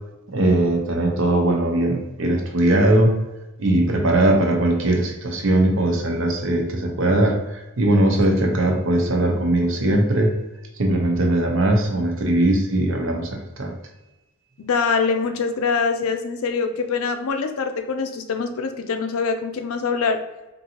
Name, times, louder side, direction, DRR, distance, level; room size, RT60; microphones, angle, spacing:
voice 1, 0.3-3.1 3.6-10.4 10.8-13.7, right 1 dB, 60° right, 2 dB, 0.7 m, -20 dB
voice 2, 14.6-20.2, left 5 dB, 80° left, 6 dB, 0.5 m, -24 dB
4.4 x 2.7 x 2.8 m, 1.0 s
head